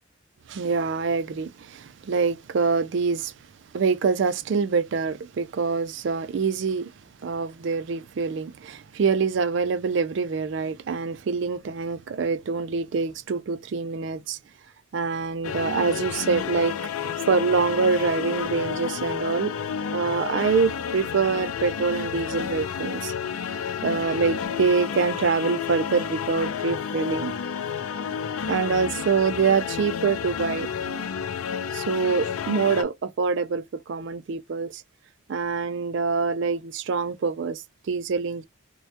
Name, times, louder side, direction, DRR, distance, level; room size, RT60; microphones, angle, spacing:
voice 1, 0.5-3.3 3.7-6.9 7.2-14.4 14.9-16.7 17.0-19.5 19.9-23.1 23.8-27.3 28.5-30.7 31.7-34.8 35.3-38.4, right 5 dB, 55° right, 0.3 m, -25 dB
sound 1, 15.4-32.8, left 7 dB, 80° left, 0.3 m, -31 dB
2.2 x 2.1 x 2.6 m
head